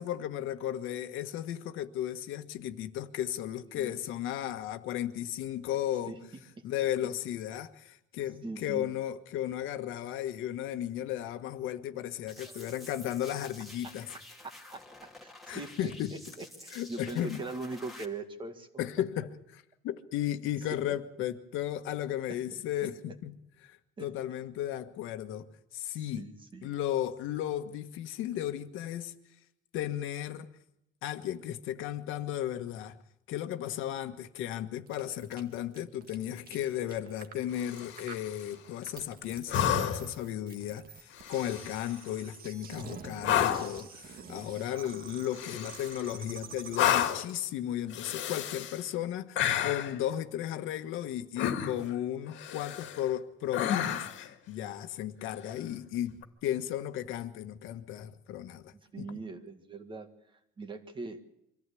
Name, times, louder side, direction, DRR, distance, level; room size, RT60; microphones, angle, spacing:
voice 1, 0.0-6.1 6.6-14.1 15.5-16.1 16.7-17.4 18.8-23.3 23.6-25.4 25.7-26.2 26.6-29.2 29.7-30.5 31.0-33.0 33.3-54.0 54.5-56.1 56.4-59.0, left 11 dB, 85° left, 1.5 m, -35 dB
voice 2, 8.4-8.9 12.4-12.7 13.8-13.9 14.4-15.9 16.4-18.7 20.9-21.0 22.3-22.4 22.8-22.9 24.0-24.1 26.2-26.7 45.5-45.6 58.9-61.3, right 3 dB, 25° right, 1.9 m, -41 dB
sound 1, 12.3-18.0, left 1 dB, ahead, 2.3 m, -50 dB
sound 2, 34.9-47.5, right 6 dB, 50° right, 1.8 m, -48 dB
sound 3, 37.6-38.3 39.5-40.2 41.2-41.9 43.2-43.8 45.3-46.1 46.7-47.3 47.9-48.8 49.4-50.0 51.4-51.9 52.4-53.0 53.5-54.3 56.1-56.2, left 10 dB, 70° left, 1.9 m, -30 dB
24.5 x 14.5 x 8.5 m
cardioid pair, 145°, 20 cm